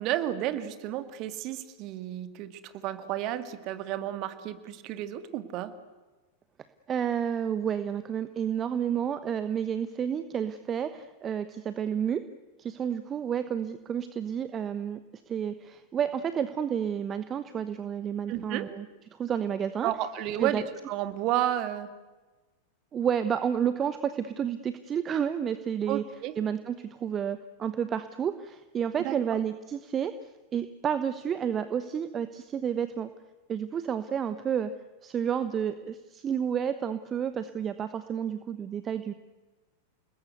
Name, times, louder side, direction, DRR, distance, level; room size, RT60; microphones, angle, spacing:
voice 1, 0.0-5.7 18.3-18.7 19.8-21.9 25.9-26.3 29.0-29.1, right 12 dB, 40° right, 11 dB, 2.2 m, -32 dB
voice 2, 6.9-12.2 12.6-15.0 15.3-18.9 19.2-19.9 20.4-20.6 22.9-26.0 26.4-30.1 30.5-33.1 33.5-34.7 35.0-39.1, right 8 dB, 25° right, 12 dB, 1.1 m, -30 dB
29.5 x 20.0 x 8.1 m, 1.2 s
figure-of-eight pair, 90°, 0 cm